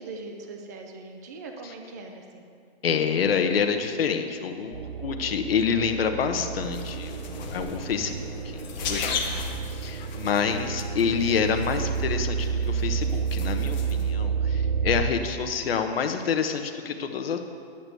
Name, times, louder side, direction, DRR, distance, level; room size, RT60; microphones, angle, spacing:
voice 1, 0.0-2.5 9.2-9.6, right 3 dB, 20° right, 3 dB, 0.4 m, -41 dB
voice 2, 2.8-17.4, left 6 dB, 65° left, 6 dB, 1.2 m, -27 dB
sound 1, 4.7-15.1, right 6 dB, 65° right, 0.7 m, -30 dB
sound 2, 6.6-14.1, left 5 dB, 45° left, 1.2 m, -37 dB
11.0 x 5.9 x 7.9 m, 2.3 s
hypercardioid pair, 170°, 31 cm